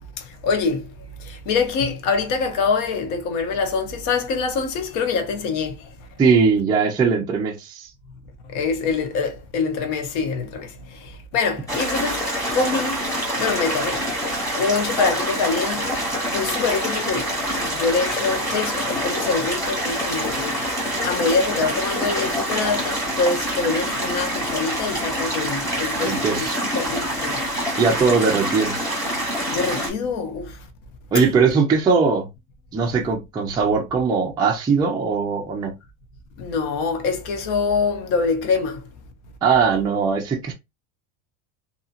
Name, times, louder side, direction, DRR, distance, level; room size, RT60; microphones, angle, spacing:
voice 1, 0.2-0.9 1.2-5.9 8.5-12.2 12.5-13.0 13.4-17.3 17.6-20.7 21.0-26.5 26.7-27.4 29.5-30.6 31.1-31.2 36.4-38.8, left 4 dB, 70° left, 0.9 m, -25 dB
voice 2, 6.2-7.9 26.0-26.6 27.8-28.8 31.1-32.3 32.7-35.7 39.4-40.5, right 5 dB, 10° right, 0.4 m, -20 dB
sound 1, 11.7-29.9, equal, 10° left, 1.3 m, -26 dB
2.8 x 2.7 x 2.4 m
cardioid pair, 155°, 39 cm